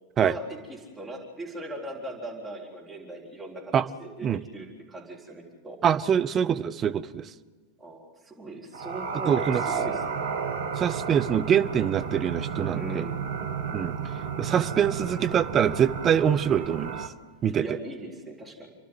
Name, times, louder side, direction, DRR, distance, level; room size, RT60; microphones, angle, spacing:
voice 1, 0.2-4.3 4.5-5.8 7.8-10.3 12.7-13.2 17.6-18.7, right 1 dB, 5° right, -3 dB, 3.8 m, -39 dB
voice 2, 5.8-7.2 9.3-9.6 10.8-13.0 13.7-13.9 14.4-17.0 17.4-17.6, right 8 dB, 25° right, 9 dB, 0.8 m, -24 dB
sound 1, 8.7-17.1, right 6 dB, 65° right, 1.3 m, -32 dB
29.5 x 11.5 x 7.8 m, 1.5 s
figure-of-eight pair, 90°, 0 cm